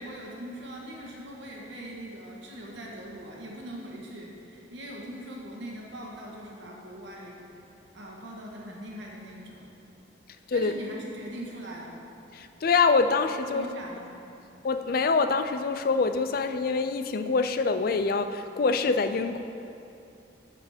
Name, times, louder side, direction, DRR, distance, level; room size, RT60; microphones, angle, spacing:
voice 1, 0.0-7.4 7.9-9.7 10.5-12.0 13.4-14.1, right 1 dB, 65° right, -2 dB, 1.5 m, -41 dB
voice 2, 12.3-13.7 14.6-19.4, left 4 dB, 50° left, 10 dB, 0.4 m, -25 dB
12.5 x 5.0 x 5.0 m, 2.6 s
head